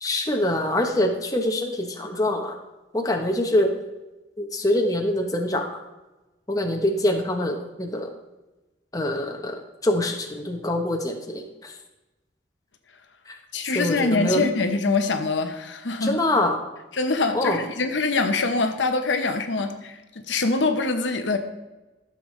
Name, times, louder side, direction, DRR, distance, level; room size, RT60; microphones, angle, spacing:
voice 1, 0.0-2.6 2.9-3.7 4.4-5.8 6.5-8.1 8.9-11.8 13.3-13.4 13.7-14.4 16.0-16.6 17.3-17.6, left 1 dB, 20° left, 3 dB, 0.9 m, -24 dB
voice 2, 13.5-16.2 17.0-21.4, left 3 dB, 80° left, 6 dB, 0.8 m, -24 dB
12.5 x 6.7 x 3.2 m, 1.1 s
head